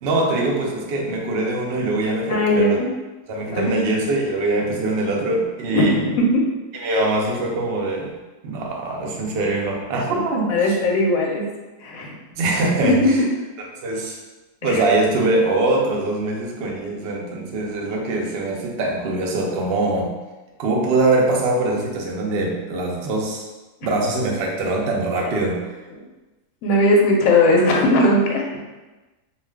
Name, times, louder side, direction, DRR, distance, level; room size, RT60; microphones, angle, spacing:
voice 1, 0.0-2.8 3.3-6.0 6.7-8.1 8.4-10.6 12.4-13.2 13.8-14.2 14.6-20.1 20.6-23.4 23.8-25.7, right 2 dB, 80° right, 0 dB, 0.5 m, -22 dB
voice 2, 2.3-2.9 3.5-3.7 5.7-6.4 10.5-11.5 11.8-12.2 12.8-13.3 14.6-14.8 25.1-25.3 25.9-26.0 26.6-28.6, left 1 dB, 70° left, 0 dB, 0.9 m, -18 dB
2.4 x 2.3 x 3.3 m, 1.2 s
omnidirectional pair, 1.7 m